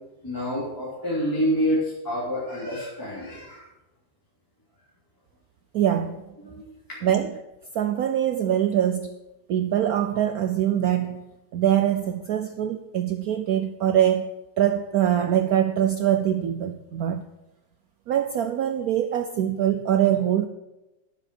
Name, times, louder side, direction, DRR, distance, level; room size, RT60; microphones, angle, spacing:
voice 1, 0.2-3.7 6.5-7.0, equal, 10° left, 2.8 m, -28 dB
voice 2, 5.7-6.3 7.0-7.4 7.7-9.2 9.5-11.2 11.5-17.3 18.1-20.5, right 10 dB, 70° right, 0.9 m, -23 dB
11.5 x 7.1 x 6.1 m
omnidirectional pair, 2.0 m